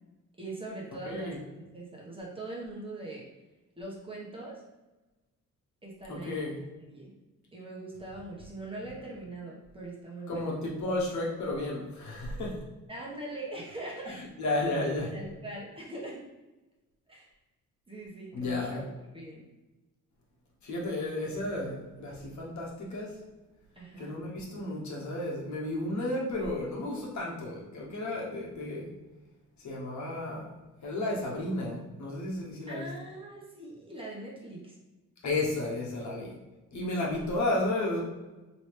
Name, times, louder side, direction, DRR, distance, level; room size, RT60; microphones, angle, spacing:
voice 1, 0.4-3.2 3.8-4.6 5.8-6.5 6.8-7.1 7.5-10.5 12.9-14.2 15.1-16.2 17.1-17.3 17.9-18.8 19.1-19.4 23.7-24.1 32.7-34.7 36.7-37.1, right 2 dB, 15° right, -4 dB, 1.3 m, -42 dB
voice 2, 1.0-1.4 6.1-6.6 10.3-12.6 14.1-15.2 18.3-18.9 20.6-23.2 24.0-28.9 29.6-30.5 30.8-32.9 35.2-36.4 36.7-38.0, left 2 dB, 65° left, -3 dB, 1.2 m, -33 dB
3.1 x 2.9 x 3.2 m, 1.1 s
cardioid pair, 80°, 31 cm